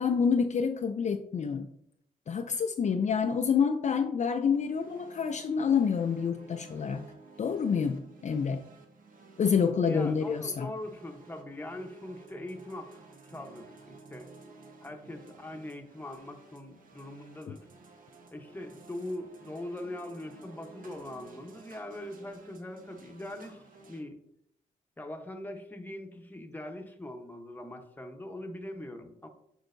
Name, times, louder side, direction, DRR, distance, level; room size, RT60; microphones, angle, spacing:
voice 1, 0.0-1.7 2.3-7.0 7.4-8.6 9.4-10.7 17.5-17.6, left 6 dB, 50° left, 5 dB, 0.4 m, -28 dB
sound 1, 4.5-24.0, right 4 dB, 65° right, 1.1 m, -54 dB
voice 2, 9.9-14.3 14.8-17.7 18.3-24.2 25.0-29.3, left 1 dB, 10° left, 3 dB, 0.9 m, -42 dB
6.4 x 6.2 x 2.6 m, 0.72 s
cardioid pair, 100°, 15 cm